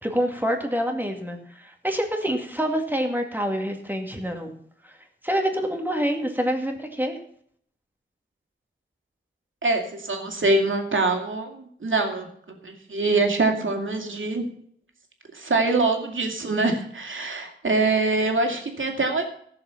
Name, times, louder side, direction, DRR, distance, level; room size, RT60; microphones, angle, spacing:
voice 1, 0.0-4.5 4.8-5.0 5.2-7.2, equal, 10° right, 3 dB, 2.1 m, -26 dB
voice 2, 9.6-14.4 15.3-19.3, right 3 dB, 75° right, 3 dB, 2.4 m, -24 dB
16.0 x 7.0 x 5.9 m, 0.63 s
wide cardioid pair, 75°, 20 cm